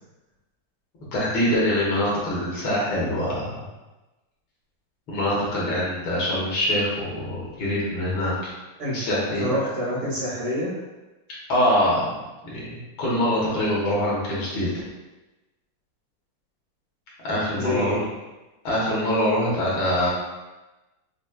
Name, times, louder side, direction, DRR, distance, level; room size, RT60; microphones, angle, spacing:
voice 1, 1.1-3.6 5.1-8.5 8.9-9.5 11.5-12.0 12.4-14.7 17.2-18.0 18.6-20.1, left 1 dB, 80° left, -6 dB, 2.0 m, -24 dB
voice 2, 9.3-10.7 17.5-18.0, equal, 55° right, -8 dB, 1.6 m, -27 dB
6.1 x 2.2 x 2.2 m, 1.1 s
omnidirectional pair, 2.1 m